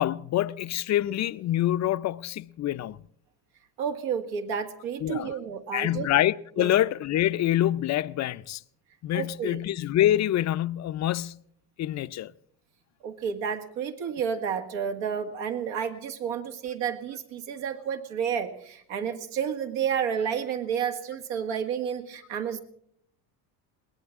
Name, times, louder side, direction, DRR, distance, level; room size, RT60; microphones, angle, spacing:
voice 1, 0.0-3.0 5.0-5.3 5.7-8.6 9.0-11.4 11.8-12.3, left 13 dB, 40° left, 0.5 m, -26 dB
voice 2, 3.8-6.1 6.6-6.8 9.1-9.6 13.0-22.6, right 7 dB, 80° right, 2.1 m, -31 dB
21.5 x 18.5 x 3.6 m
supercardioid pair, 105°, 45 cm